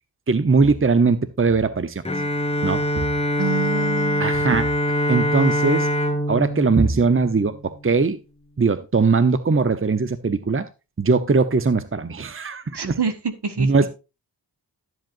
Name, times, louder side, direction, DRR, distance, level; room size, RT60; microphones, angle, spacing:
voice 1, 0.3-2.0 2.6-3.1 4.2-4.7 5.1-5.9 6.3-8.2 8.6-10.7 11.0-13.0 13.6-13.9, right 4 dB, 30° right, 0.8 m, -20 dB
Bowed string instrument, 2.0-7.9, left 1 dB, 15° left, 1.7 m, -24 dB
voice 2, 3.4-4.3 12.7-13.7, right 4 dB, 70° right, 1.6 m, -27 dB
12.0 x 7.8 x 2.6 m
cardioid pair, 45°, 42 cm